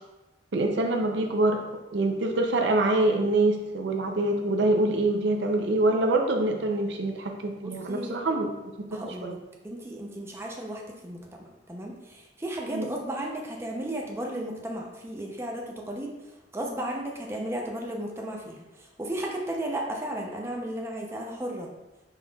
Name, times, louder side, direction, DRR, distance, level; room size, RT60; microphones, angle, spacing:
voice 1, 0.5-1.6 1.9-8.5 9.2-9.4 12.7-12.9, right 2 dB, 70° right, 3 dB, 0.5 m, -25 dB
voice 2, 7.5-8.2 8.9-9.4 9.6-11.2 11.7-16.1 16.5-21.7, right 1 dB, 15° right, -1 dB, 0.6 m, -34 dB
5.5 x 4.1 x 2.3 m, 1.1 s
head